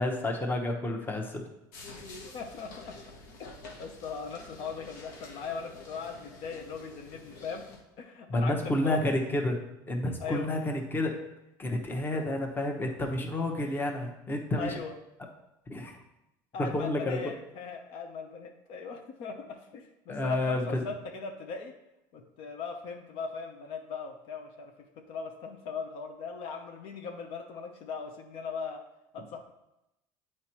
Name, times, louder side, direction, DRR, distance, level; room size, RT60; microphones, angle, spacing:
voice 1, 0.0-1.4 8.3-9.6 9.9-11.2 11.6-14.7 15.7-16.0 16.6-17.2 20.1-20.8, left 1 dB, 20° left, 3 dB, 1.0 m, -30 dB
sound 1, 1.7-7.8, left 2 dB, 85° left, 1.1 m, -48 dB
voice 2, 2.3-2.9 3.8-7.6 8.0-8.5 8.8-9.1 10.2-10.5 11.9-12.2 14.6-14.9 16.5-21.7 22.1-24.7 25.1-28.8 29.1-29.4, left 5 dB, 65° left, 4 dB, 0.8 m, -39 dB
8.0 x 4.4 x 3.0 m, 0.88 s
supercardioid pair, 105°, 10 cm